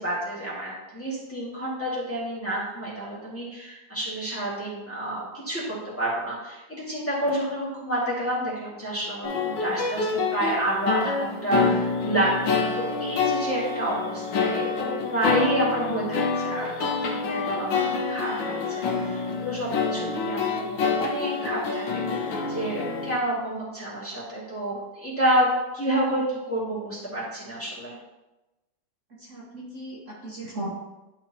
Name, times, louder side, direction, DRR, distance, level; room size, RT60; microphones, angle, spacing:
voice 1, 0.0-5.6 6.0-28.0, right 1 dB, 5° left, -8 dB, 2.0 m, -29 dB
sound 1, 9.2-23.2, left 4 dB, 90° left, 1.6 m, -27 dB
voice 2, 29.3-30.7, right 1 dB, 45° right, -6 dB, 1.4 m, -37 dB
11.0 x 4.5 x 3.0 m, 1.0 s
omnidirectional pair, 2.0 m